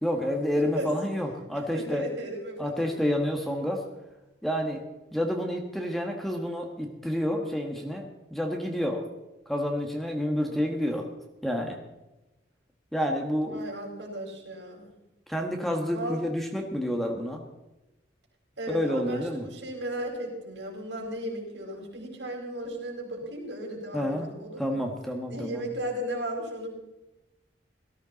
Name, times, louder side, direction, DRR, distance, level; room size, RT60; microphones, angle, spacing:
voice 1, 0.0-2.1 2.6-3.8 4.4-4.8 5.1-9.1 9.5-11.0 11.4-11.8 12.9-13.6 15.3-17.4 18.7-19.4 23.9-24.3 24.6-25.6, equal, ahead, 2 dB, 1.4 m, -29 dB
voice 2, 0.5-0.9 1.7-2.9 10.4-10.6 13.5-14.9 15.9-16.2 18.6-24.8 25.3-26.7, right 1 dB, 75° right, 0 dB, 4.5 m, -35 dB
18.0 x 14.0 x 4.1 m, 1.0 s
head